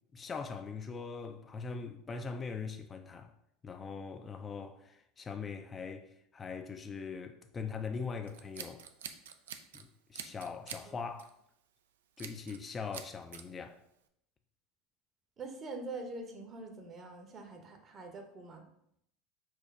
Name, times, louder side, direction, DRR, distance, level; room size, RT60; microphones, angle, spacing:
voice 1, 0.1-3.3 3.6-8.8 9.7-11.3 12.2-13.8, left 5 dB, 30° left, 0.4 m, -41 dB
Scissors, 8.3-9.8 10.1-10.9 11.2-11.4 12.2-12.6 12.9-13.4, right 8 dB, 85° right, 0.3 m, -45 dB
voice 2, 15.4-18.6, right 3 dB, 35° right, 1.0 m, -44 dB
4.5 x 2.2 x 4.7 m
hypercardioid pair, 90°, 0 cm